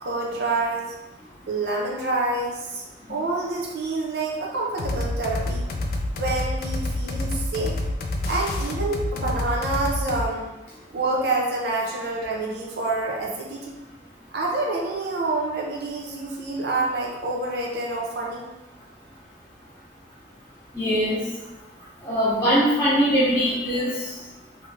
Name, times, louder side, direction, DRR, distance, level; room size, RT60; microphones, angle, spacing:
voice 1, 0.0-0.9 1.5-2.8 3.1-5.7 6.2-7.8 8.3-10.5 10.9-13.7 14.3-18.4, right 2 dB, 70° right, -2 dB, 0.6 m, -27 dB
sound 1, 4.8-10.3, left 1 dB, 60° left, 0.3 m, -28 dB
voice 2, 20.7-21.2 22.0-23.9, equal, 15° left, -9 dB, 1.0 m, -21 dB
3.2 x 2.7 x 2.5 m, 1.0 s
head